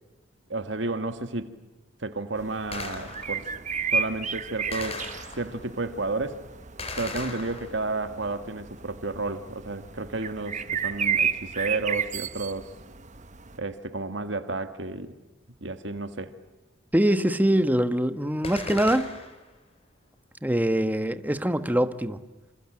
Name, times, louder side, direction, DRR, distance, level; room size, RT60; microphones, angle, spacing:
voice 1, 0.5-1.5 2.0-3.5 3.9-6.4 7.0-12.7 13.6-15.1 15.6-16.3, right 3 dB, 65° right, 1.9 m, -32 dB
sound 1, 2.4-13.6, right 6 dB, 40° right, 1.3 m, -33 dB
Gunshot gunfire, 2.7-3.5 4.7-5.7 6.8-8.1 18.4-19.5, left 3 dB, 30° left, 4.5 m, -38 dB
voice 2, 16.9-19.1 20.4-22.2, right 1 dB, 10° right, 1.2 m, -23 dB
28.0 x 27.5 x 7.7 m
head